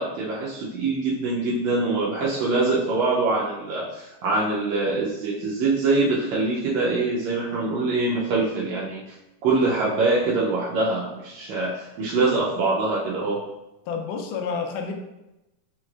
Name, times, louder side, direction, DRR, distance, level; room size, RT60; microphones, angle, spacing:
voice 1, 0.0-9.0 9.4-13.5, right 3 dB, 80° right, -5 dB, 1.7 m, -24 dB
voice 2, 13.9-14.9, left 5 dB, 85° left, 4 dB, 2.1 m, -29 dB
5.2 x 3.1 x 2.3 m, 0.96 s
omnidirectional pair, 3.7 m